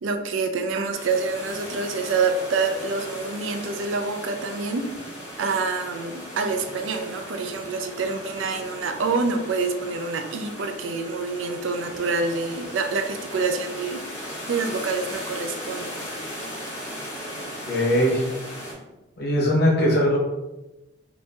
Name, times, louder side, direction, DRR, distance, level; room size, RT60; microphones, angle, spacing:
voice 1, 0.0-4.9 5.4-16.0, right 4 dB, 80° right, 6 dB, 0.4 m, -27 dB
sound 1, 0.9-18.7, equal, 30° left, 1.4 m, -37 dB
voice 2, 17.7-18.2 19.2-20.2, equal, 50° left, -2 dB, 0.9 m, -20 dB
3.0 x 2.6 x 3.3 m, 1.0 s
head